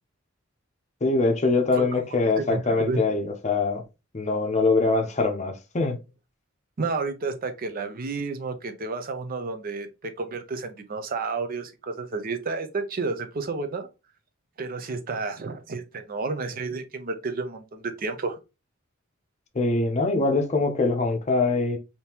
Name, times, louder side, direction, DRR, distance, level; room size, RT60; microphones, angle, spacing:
voice 1, 1.0-3.8 4.1-6.0 19.5-21.8, left 3 dB, 35° left, 0.6 m, -23 dB
voice 2, 2.4-3.0 6.8-13.9 14.6-18.4, right 3 dB, 45° right, 0.5 m, -31 dB
3.5 x 2.7 x 2.8 m
head